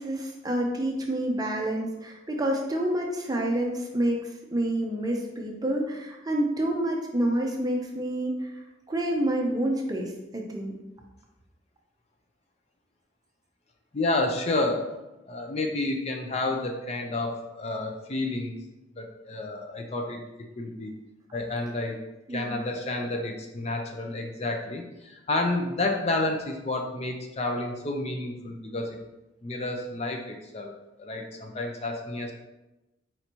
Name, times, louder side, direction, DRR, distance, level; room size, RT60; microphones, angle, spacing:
voice 1, 0.0-8.6 8.9-10.8 22.3-22.5, right 1 dB, 20° right, 1 dB, 0.5 m, -28 dB
voice 2, 13.9-14.9 15.3-18.6 19.0-20.2 20.6-20.9 21.3-22.0 22.3-29.0 29.4-30.7 31.0-32.3, left 2 dB, 35° left, 2 dB, 0.4 m, -30 dB
4.3 x 2.7 x 4.4 m, 1.0 s
head